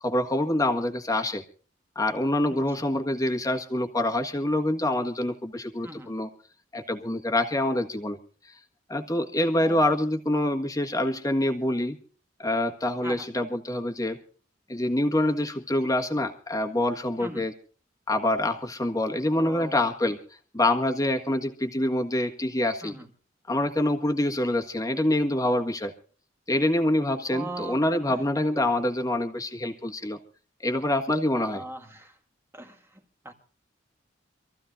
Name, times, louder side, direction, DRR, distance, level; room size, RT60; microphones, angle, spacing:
voice 1, 0.0-1.4 1.9-6.3 6.7-8.2 8.4-8.6 8.9-12.0 12.4-14.2 14.7-17.5 18.1-20.2 20.5-22.9 23.5-25.9 26.5-30.2 30.6-31.6, left 1 dB, 20° left, 4 dB, 1.6 m, -26 dB
voice 2, 2.5-2.8 5.8-6.1 9.6-9.9 13.0-13.3 17.2-17.5 19.3-19.9 22.8-23.1 27.3-27.8 28.1-28.3 31.4-32.2 32.5-33.3, right 2 dB, 15° right, 3 dB, 1.9 m, -41 dB
26.5 x 14.5 x 2.6 m, 0.40 s
head